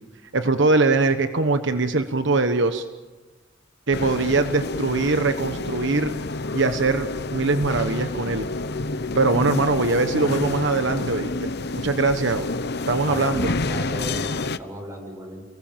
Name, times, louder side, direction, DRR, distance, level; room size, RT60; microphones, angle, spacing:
voice 1, 0.3-2.8 3.9-6.1 6.5-8.5 9.1-11.5 11.8-12.5 12.9-13.5, right 3 dB, 65° right, 9 dB, 1.2 m, -22 dB
sound 1, 3.9-14.6, left 2 dB, 60° left, 1.0 m, -29 dB
voice 2, 13.0-13.3 13.7-15.4, equal, 15° right, 2 dB, 7.5 m, -35 dB
30.0 x 20.0 x 7.5 m, 1.2 s
head